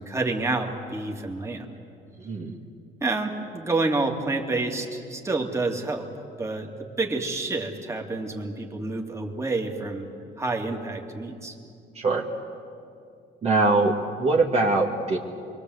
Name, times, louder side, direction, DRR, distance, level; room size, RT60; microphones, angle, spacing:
voice 1, 0.0-1.7 3.0-6.1 6.4-10.1 10.4-11.5, right 2 dB, 15° right, 1 dB, 2.7 m, -28 dB
voice 2, 2.2-2.6 11.9-12.3 13.4-15.2, right 3 dB, 40° right, -1 dB, 2.2 m, -22 dB
27.5 x 22.5 x 8.2 m, 2.4 s
cardioid pair, 110°, 17 cm